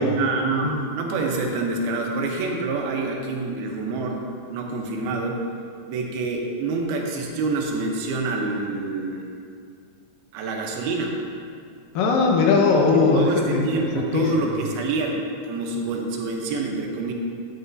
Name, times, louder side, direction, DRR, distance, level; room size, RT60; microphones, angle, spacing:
voice 1, 0.0-5.4 5.9-9.3 10.3-11.2 13.1-15.2 15.4-17.1, right 3 dB, 85° right, 0 dB, 2.9 m, -27 dB
voice 2, 12.0-14.5, left 4 dB, 75° left, 0 dB, 2.3 m, -20 dB
11.5 x 9.2 x 2.7 m, 2.3 s
omnidirectional pair, 4.3 m